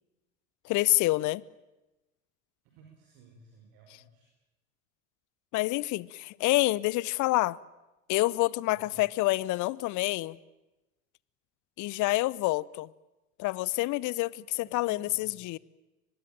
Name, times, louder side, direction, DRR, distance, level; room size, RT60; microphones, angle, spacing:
voice 1, 0.6-1.4 5.5-7.6 8.1-10.4 11.8-12.9 13.4-15.6, left 19 dB, 45° left, 0.8 m, -27 dB
voice 2, 2.7-4.3 8.7-9.0 14.6-15.3, right 4 dB, 60° right, 5.4 m, -56 dB
24.0 x 21.0 x 9.1 m
figure-of-eight pair, 65°, 41 cm